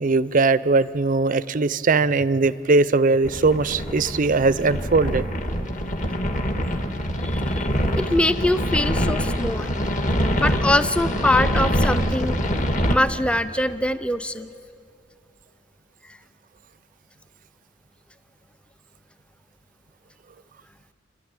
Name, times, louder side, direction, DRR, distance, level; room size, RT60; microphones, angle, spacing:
voice 1, 0.0-5.2, right 3 dB, 45° right, 17 dB, 0.5 m, -20 dB
sound 1, 3.2-13.0, equal, 40° left, 1.5 m, -24 dB
voice 2, 7.2-7.7 7.9-9.8 10.4-12.4 12.9-14.5, left 1 dB, 5° left, 12 dB, 0.5 m, -23 dB
29.0 x 12.0 x 8.9 m, 2.5 s
head